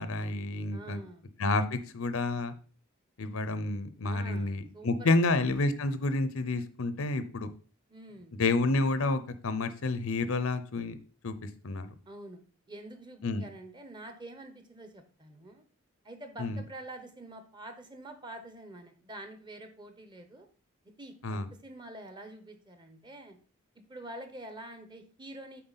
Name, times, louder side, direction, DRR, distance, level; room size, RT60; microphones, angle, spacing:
voice 1, 0.0-1.0 1.4-2.5 3.2-7.5 8.4-11.0 11.2-11.3 11.6-11.9 13.2-13.4 16.4-16.6 21.2-21.5, left 2 dB, 70° left, 12 dB, 0.7 m, -29 dB
voice 2, 0.7-1.3 4.0-5.3 7.9-8.4 12.1-12.4 12.7-15.6 16.0-20.5 20.8-23.4 23.9-25.6, right 1 dB, 20° right, 7 dB, 0.9 m, -46 dB
7.7 x 4.3 x 4.0 m, 0.39 s
head